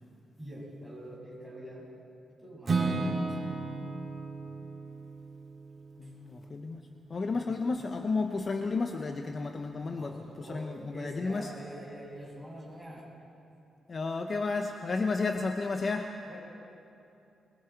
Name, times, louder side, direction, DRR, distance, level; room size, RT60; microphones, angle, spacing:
voice 1, 0.4-1.9 2.4-3.6 6.0-6.1 7.3-7.6 10.0-13.1 16.3-16.4, right 1 dB, ahead, -4 dB, 6.6 m, -45 dB
Acoustic guitar / Strum, 2.7-6.7, right 3 dB, 30° right, 3.0 m, -34 dB
voice 2, 6.0-6.8 7.1-11.5 13.9-16.2, left 3 dB, 35° left, 5 dB, 0.8 m, -32 dB
27.5 x 22.0 x 4.6 m, 2.7 s
cardioid pair, 130°, 0 cm